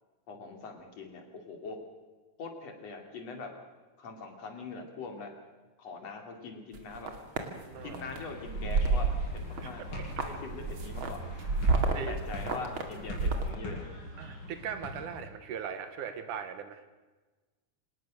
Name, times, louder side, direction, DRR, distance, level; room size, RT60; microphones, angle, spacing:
voice 1, 0.3-1.8 2.4-3.5 4.0-5.3 5.8-7.1 7.8-9.8 10.2-11.2 12.1-13.9, left 4 dB, 55° left, 4 dB, 4.0 m, -42 dB
sound 1, 6.7-7.5 7.9-8.2 8.5-9.6 9.9-13.5, right 3 dB, 40° right, 2.7 m, -29 dB
voice 2, 7.5-8.0 9.6-9.7 11.9-12.2 14.2-16.8, right 7 dB, 75° right, 9 dB, 2.7 m, -39 dB
sound 2, 7.7-15.3, left 2 dB, 80° left, 8.0 m, -44 dB
26.0 x 19.5 x 6.5 m, 1.3 s
omnidirectional pair, 3.7 m